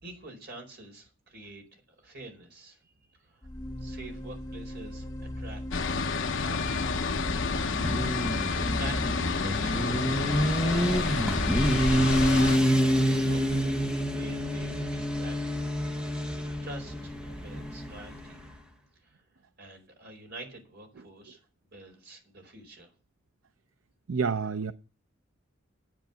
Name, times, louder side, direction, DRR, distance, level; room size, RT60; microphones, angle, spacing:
voice 1, 0.0-2.9 3.2-3.5 3.8-5.1 5.4-5.6 6.4-6.7 8.5-11.5 12.6-13.7 14.1-15.7 16.1-17.1 17.4-18.4 19.0-19.2 19.6-21.4 21.7-22.9, right 2 dB, 55° right, 4.7 m, -47 dB
sound 1, 3.4-13.2, left 1 dB, 20° left, 1.9 m, -39 dB
sound 2, 5.7-12.6, left 4 dB, 65° left, 0.9 m, -30 dB
Motorcycle, 6.8-18.5, equal, 5° right, 1.2 m, -28 dB
voice 2, 24.1-24.7, right 5 dB, 80° right, 0.6 m, -29 dB
10.5 x 8.9 x 7.2 m
head